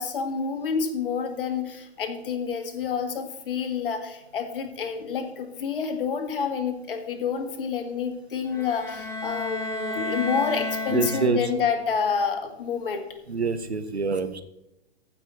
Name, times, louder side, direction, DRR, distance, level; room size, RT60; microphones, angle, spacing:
voice 1, 0.0-13.1, left 6 dB, 55° left, 5 dB, 1.9 m, -28 dB
sound 1, 8.5-11.7, left 2 dB, 10° left, 1.4 m, -32 dB
voice 2, 10.9-11.5 13.3-14.4, right 4 dB, 90° right, 11 dB, 1.1 m, -26 dB
15.0 x 5.9 x 4.1 m, 0.89 s
figure-of-eight pair, 115°, 32 cm